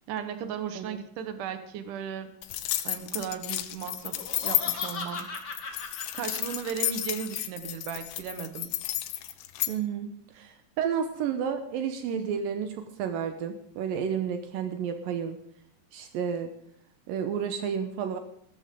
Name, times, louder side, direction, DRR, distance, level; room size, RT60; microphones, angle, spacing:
voice 1, 0.1-2.3 2.8-5.3 6.1-8.7, right 8 dB, 70° right, 9 dB, 2.0 m, -36 dB
sound 1, 2.4-9.7, left 15 dB, 90° left, 3.3 m, -32 dB
Laughter, 4.0-7.3, left 3 dB, 55° left, 1.1 m, -39 dB
voice 2, 9.7-15.4 15.9-16.5 17.1-18.2, right 7 dB, 85° right, 7 dB, 2.0 m, -31 dB
16.0 x 14.0 x 3.7 m, 0.67 s
omnidirectional pair, 5.3 m